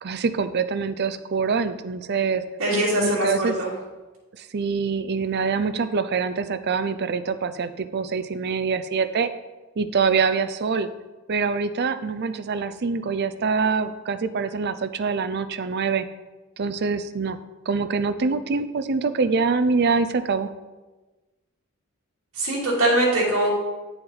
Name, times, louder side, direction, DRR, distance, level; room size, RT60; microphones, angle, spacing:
voice 1, 0.0-2.4 3.0-3.6 4.4-9.3 9.8-10.9 11.3-16.1 16.6-17.4 17.7-20.5, right 5 dB, 50° right, 12 dB, 0.5 m, -25 dB
voice 2, 2.6-3.3 3.6-3.7 22.4-23.5, right 1 dB, 85° right, -8 dB, 2.8 m, -21 dB
10.0 x 6.9 x 4.0 m, 1.2 s
head